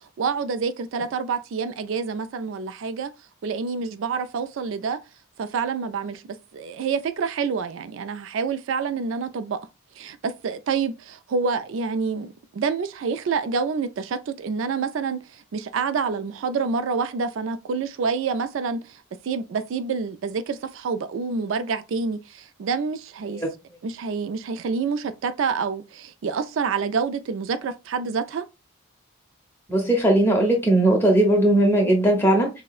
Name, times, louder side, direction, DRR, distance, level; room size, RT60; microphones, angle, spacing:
voice 1, 0.2-3.1 3.4-5.0 5.4-6.2 6.5-9.6 10.0-23.4 23.8-28.4, right 5 dB, 60° right, 0.3 m, -27 dB
voice 2, 29.7-32.5, right 1 dB, 10° left, 1.0 m, -18 dB
6.0 x 2.1 x 2.3 m
head